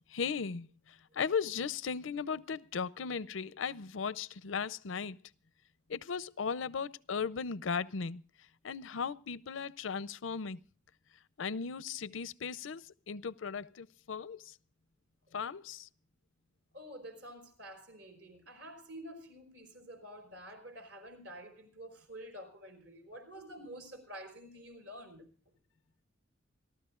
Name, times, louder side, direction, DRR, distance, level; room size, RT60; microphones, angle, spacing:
voice 1, 0.1-5.2 5.9-8.2 8.6-10.6 11.4-14.5 15.3-15.9, left 6 dB, 85° left, 0.6 m, -37 dB
voice 2, 16.7-25.3, equal, 65° right, 5.1 m, -49 dB
28.5 x 12.5 x 2.4 m
head